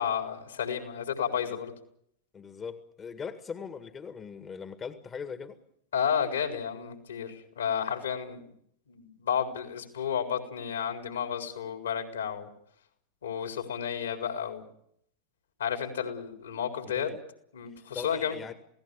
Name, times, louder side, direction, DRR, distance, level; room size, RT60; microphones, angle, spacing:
voice 1, 0.0-1.7 5.9-8.4 8.9-12.5 13.2-14.6 15.6-17.1 17.5-18.3, left 8 dB, 70° left, 4 dB, 4.2 m, -32 dB
voice 2, 2.3-5.6 17.0-17.2 17.9-18.5, left 6 dB, 20° left, 9 dB, 1.9 m, -40 dB
28.5 x 18.0 x 7.0 m, 0.72 s
figure-of-eight pair, 90°, 0 cm